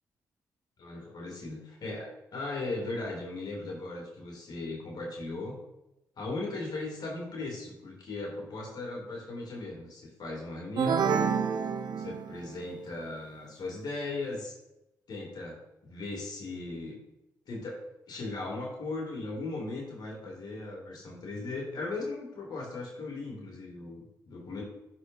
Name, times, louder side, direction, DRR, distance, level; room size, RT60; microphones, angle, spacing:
voice 1, 0.8-5.6 6.2-11.3 12.0-14.5 15.1-15.6 15.8-17.0 17.5-17.8 18.1-24.6, left 2 dB, 55° left, -1 dB, 2.2 m, -37 dB
sound 1, 10.8-12.6, right 6 dB, 60° right, 0.6 m, -28 dB
11.5 x 4.4 x 2.6 m, 0.92 s
hypercardioid pair, 45°, 8 cm